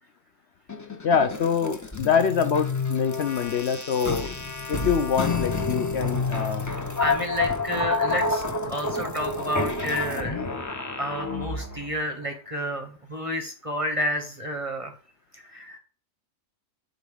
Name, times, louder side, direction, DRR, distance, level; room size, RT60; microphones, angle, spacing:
sound 1, 0.7-11.9, left 3 dB, 25° left, 0.4 m, -29 dB
voice 1, 1.0-4.3 4.7-6.7, left 7 dB, 65° left, 8 dB, 0.8 m, -25 dB
voice 2, 7.0-10.5 11.0-14.9 15.3-15.8, equal, 30° right, 5 dB, 0.7 m, -30 dB
7.0 x 3.9 x 4.8 m, 0.40 s
omnidirectional pair, 1.4 m